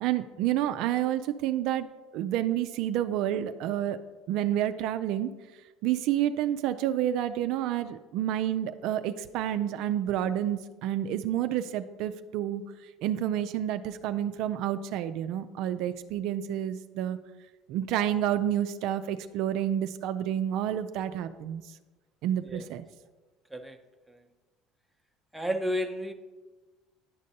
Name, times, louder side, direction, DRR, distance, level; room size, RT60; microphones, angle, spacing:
voice 1, 0.0-1.9 2.1-4.0 4.3-5.3 5.8-12.6 13.0-17.2 17.7-21.6 22.2-22.9, right 11 dB, 70° right, 10 dB, 0.3 m, -29 dB
voice 2, 25.3-26.1, equal, ahead, 3 dB, 0.7 m, -32 dB
10.0 x 5.1 x 2.7 m, 1.2 s
supercardioid pair, 85°, 0 cm